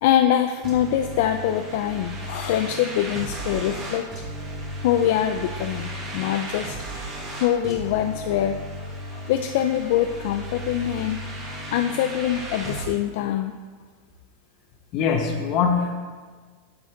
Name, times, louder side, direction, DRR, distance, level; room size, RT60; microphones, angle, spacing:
voice 1, 0.0-4.0 4.8-6.8 7.3-8.6 9.1-13.5, left 11 dB, 60° left, 6 dB, 0.4 m, -24 dB
sound 1, 0.6-12.9, right 1 dB, 25° right, 1.9 m, -35 dB
voice 2, 14.9-15.9, left 6 dB, 40° left, 3 dB, 1.3 m, -22 dB
11.0 x 6.7 x 3.9 m, 1.5 s
supercardioid pair, 160°, 0 cm